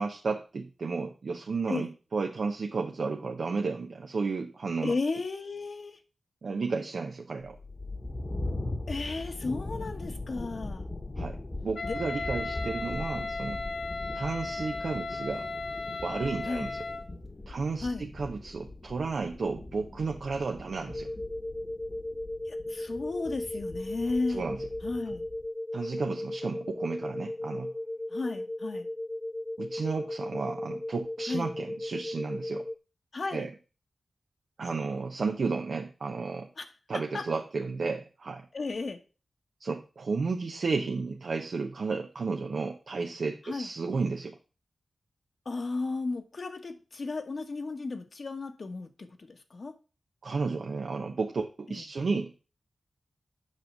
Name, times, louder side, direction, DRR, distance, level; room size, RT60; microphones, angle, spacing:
voice 1, 0.0-4.9 6.4-7.6 11.2-13.6 14.1-15.5 16.0-16.8 17.5-21.1 24.3-24.6 25.7-27.7 29.6-32.7 33.3-33.5 34.6-36.5 36.9-38.5 39.6-44.4 50.2-52.4, right 4 dB, 75° right, 4 dB, 0.9 m, -33 dB
voice 2, 4.8-6.0 8.9-10.9 11.8-12.0 16.4-16.7 17.8-18.1 22.4-24.4 24.8-25.3 28.1-28.9 31.3-31.5 33.1-33.5 36.6-36.7 37.1-37.2 38.5-39.0 43.4-43.7 45.4-49.7 51.7-51.8, left 3 dB, 60° left, 5 dB, 1.3 m, -34 dB
sound 1, 7.5-25.5, left 2 dB, 35° left, 1.2 m, -40 dB
Wind instrument woodwind instrument, 11.7-17.1, left 3 dB, 90° left, 0.9 m, -36 dB
sound 2, 20.9-32.8, left 1 dB, 15° left, 0.5 m, -36 dB
7.6 x 5.5 x 6.0 m, 0.34 s
cardioid pair, 65°, 0 cm